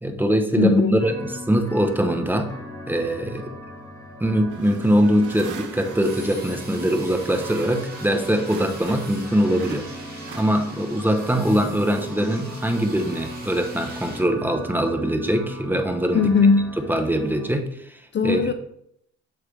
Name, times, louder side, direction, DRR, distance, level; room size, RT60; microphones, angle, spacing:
voice 1, 0.0-2.5 2.9-3.5 4.2-9.9 10.3-16.3 16.9-18.5, equal, 5° right, 0.7 m, -22 dB
voice 2, 0.6-1.0 16.1-16.7 18.1-18.5, left 5 dB, 40° left, 0.4 m, -18 dB
sound 1, 1.0-17.5, equal, 10° left, 1.7 m, -39 dB
sound 2, 4.5-9.2 9.5-11.0, right 6 dB, 85° right, 1.0 m, -42 dB
sound 3, 6.0-14.2, right 2 dB, 30° right, 2.3 m, -42 dB
6.5 x 4.9 x 3.2 m
cardioid pair, 90°, 30 cm